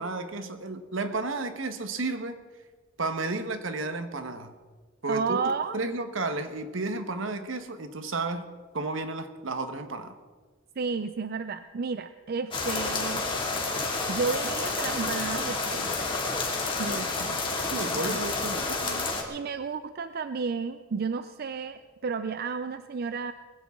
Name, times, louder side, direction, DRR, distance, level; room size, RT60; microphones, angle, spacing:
voice 1, 0.0-2.4 3.0-4.5 5.0-5.4 5.7-8.4 8.7-10.1 17.7-19.1, right 3 dB, 75° right, 8 dB, 1.3 m, -32 dB
voice 2, 5.1-5.8 10.8-13.3 14.1-16.0 16.8-17.4 18.1-18.2 19.3-23.3, right 5 dB, 50° right, 11 dB, 0.4 m, -32 dB
sound 1, 12.5-19.2, left 3 dB, 25° left, 2.4 m, -30 dB
20.0 x 15.5 x 3.7 m, 1.4 s
head